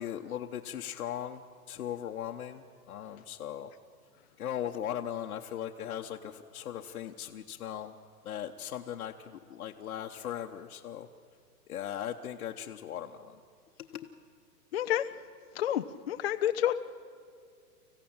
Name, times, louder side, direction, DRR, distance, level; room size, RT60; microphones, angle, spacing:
voice 1, 0.0-3.7 4.4-8.0 8.2-11.1 11.7-13.4 13.9-14.1, left 10 dB, 65° left, 2 dB, 1.1 m, -38 dB
voice 2, 14.7-15.0 15.6-16.7, left 11 dB, 45° left, 8 dB, 0.5 m, -29 dB
25.5 x 15.5 x 8.8 m, 2.2 s
hypercardioid pair, 165°, 46 cm